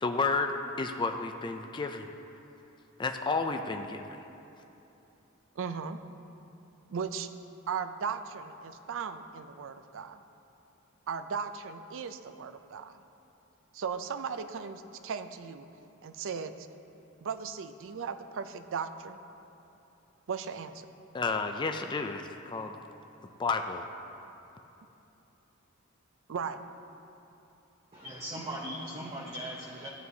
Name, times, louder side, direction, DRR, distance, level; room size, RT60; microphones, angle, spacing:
voice 1, 0.0-2.1 3.0-4.2 21.1-22.8 23.4-23.9, left 4 dB, 20° left, 5 dB, 0.3 m, -31 dB
voice 2, 5.6-6.0 6.9-7.3 7.7-10.2 11.1-12.9 13.7-15.7 16.0-16.5 17.2-19.2 20.3-20.8 26.3-26.6, right 6 dB, 60° right, 9 dB, 0.5 m, -37 dB
voice 3, 27.9-29.9, equal, 25° right, -4 dB, 0.8 m, -39 dB
15.0 x 9.4 x 2.7 m, 3.0 s
head